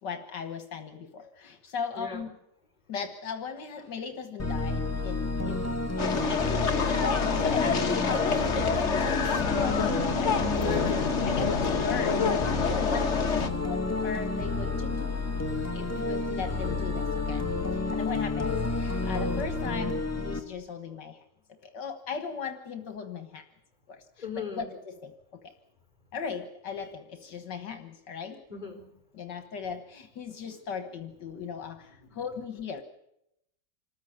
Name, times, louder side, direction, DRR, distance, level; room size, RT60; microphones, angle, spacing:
voice 1, 0.0-2.4 2.9-5.6 6.1-10.6 11.2-15.2 15.7-17.5 17.7-21.2 21.6-23.4 23.9-25.1 25.4-25.5 26.1-28.4 29.1-32.8, left 6 dB, 75° left, 7 dB, 2.0 m, -38 dB
voice 2, 1.9-2.2 10.6-11.1 24.2-24.7 28.5-28.8 31.4-31.5 32.1-32.4, left 5 dB, 25° left, 3 dB, 4.5 m, -37 dB
sound 1, 4.4-20.4, left 3 dB, 10° left, 1.6 m, -30 dB
sound 2, 6.0-13.5, left 5 dB, 45° left, 1.6 m, -27 dB
26.0 x 14.5 x 9.6 m, 0.84 s
omnidirectional pair, 1.9 m